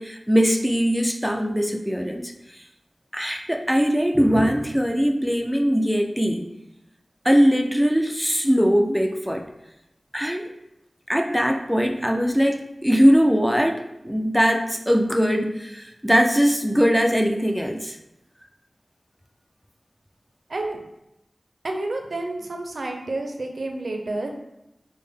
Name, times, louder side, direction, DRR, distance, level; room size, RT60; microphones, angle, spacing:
voice 1, 0.0-2.3 3.1-6.4 7.2-9.4 10.1-10.5 11.1-18.0, equal, ahead, 2 dB, 0.4 m, -21 dB
voice 2, 21.6-24.3, right 2 dB, 85° right, 3 dB, 0.4 m, -29 dB
3.4 x 2.1 x 3.4 m, 0.90 s
wide cardioid pair, 60°, 0 cm